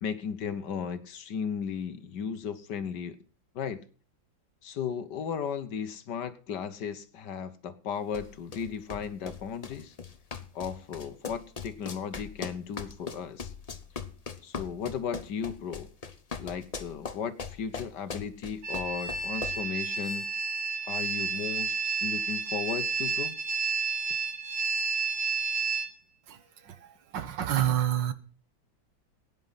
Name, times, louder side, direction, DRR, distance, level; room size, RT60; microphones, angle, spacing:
voice 1, 0.0-3.2 3.5-3.8 4.6-9.9 10.5-13.5 14.4-15.9 16.4-20.3 20.9-21.7 22.0-23.4, left 7 dB, 65° left, 11 dB, 1.6 m, -35 dB
sound 1, 8.1-19.7, left 5 dB, 30° left, 0.7 m, -40 dB
sound 2, 18.6-25.9, right 5 dB, 85° right, 3.7 m, -31 dB
voice 2, 27.1-28.1, right 11 dB, 70° right, 12 dB, 1.7 m, -27 dB
16.5 x 9.7 x 5.7 m, 0.40 s
omnidirectional pair, 2.1 m